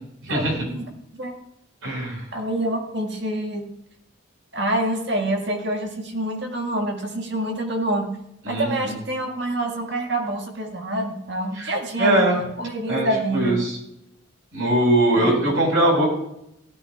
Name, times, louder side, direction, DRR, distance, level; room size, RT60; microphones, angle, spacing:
voice 1, 0.2-0.6 1.8-2.2 8.5-8.9 11.6-11.7 12.0-12.4 12.9-13.1 13.3-13.6 14.5-16.1, right 1 dB, 85° right, -1 dB, 5.2 m, -20 dB
voice 2, 2.3-3.7 4.5-8.2 8.5-12.3 12.6-13.6 15.1-15.4, right 1 dB, 55° right, 2 dB, 1.8 m, -26 dB
17.0 x 12.5 x 2.4 m, 0.81 s
head